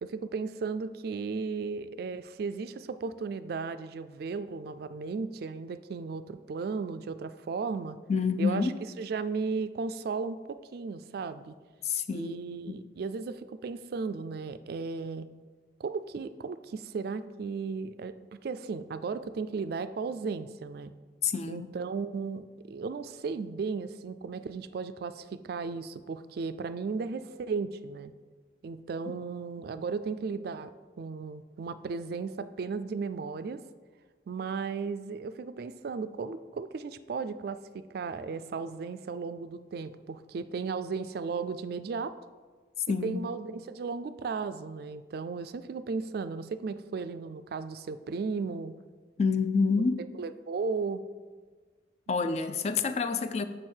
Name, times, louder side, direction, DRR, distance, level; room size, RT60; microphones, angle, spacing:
voice 1, 0.0-8.0 8.4-8.7 9.0-11.5 12.1-15.3 15.8-20.9 21.5-28.1 28.6-33.6 34.3-42.1 43.0-48.7 50.0-51.0, right 4 dB, 60° right, 0.3 m, -35 dB
voice 2, 8.1-8.7 11.8-12.4 12.7-12.8 21.2-21.7 42.9-43.2 49.2-50.0 52.1-53.4, left 5 dB, 35° left, 0.4 m, -28 dB
6.5 x 6.2 x 4.4 m
head